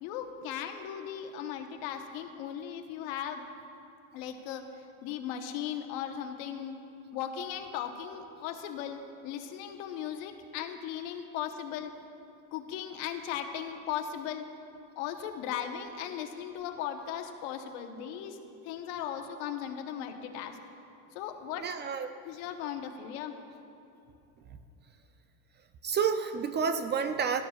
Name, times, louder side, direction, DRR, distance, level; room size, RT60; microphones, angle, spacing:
voice 1, 0.0-3.4 4.1-4.6 5.0-6.7 7.1-11.9 12.5-14.4 15.0-20.6 21.1-21.7 22.2-23.4, left 9 dB, 80° left, 5 dB, 1.0 m, -37 dB
voice 2, 21.6-22.1 25.8-27.4, right 6 dB, 30° right, 9 dB, 0.4 m, -29 dB
17.0 x 11.0 x 2.3 m, 2.9 s
supercardioid pair, 125°, 40 cm